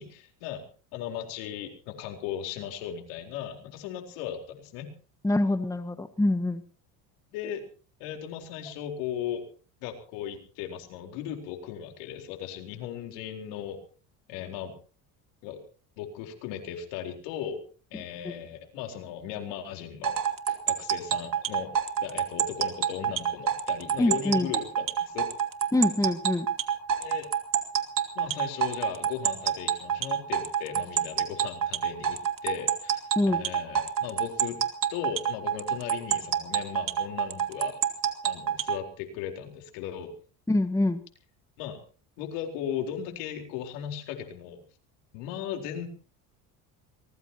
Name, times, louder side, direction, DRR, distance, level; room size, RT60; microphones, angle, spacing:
voice 1, 0.0-4.9 7.3-7.6 8.0-9.4 9.8-13.8 14.3-14.8 15.4-15.6 16.0-17.6 17.9-20.2 20.5-21.7 22.0-25.3 27.0-27.3 28.1-34.6 34.9-37.8 38.2-40.1 41.6-41.8 42.2-44.6 45.1-45.9, left 9 dB, 80° left, 4 dB, 4.3 m, -37 dB
voice 2, 5.2-6.6 18.2-18.3 24.0-24.5 25.7-26.5 33.1-33.4 40.5-41.0, left 2 dB, 10° left, 10 dB, 1.5 m, -25 dB
sound 1, 20.0-38.8, right 9 dB, 50° right, 2.8 m, -27 dB
24.0 x 20.0 x 2.9 m, 0.38 s
supercardioid pair, 90°, 40 cm